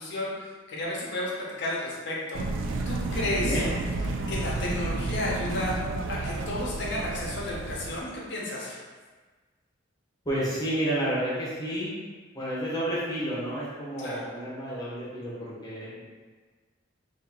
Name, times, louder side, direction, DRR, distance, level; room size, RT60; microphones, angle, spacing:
voice 1, 0.0-2.4 2.9-3.6 4.3-5.7 6.1-8.8 14.0-14.2, left 1 dB, 65° left, -5 dB, 0.9 m, -32 dB
sound 1, 2.3-8.0, right 2 dB, 70° right, 0.3 m, -31 dB
voice 2, 3.3-3.7 10.2-12.0 12.3-16.0, right 1 dB, 20° left, -8 dB, 1.0 m, -30 dB
2.9 x 2.6 x 3.8 m, 1.4 s
head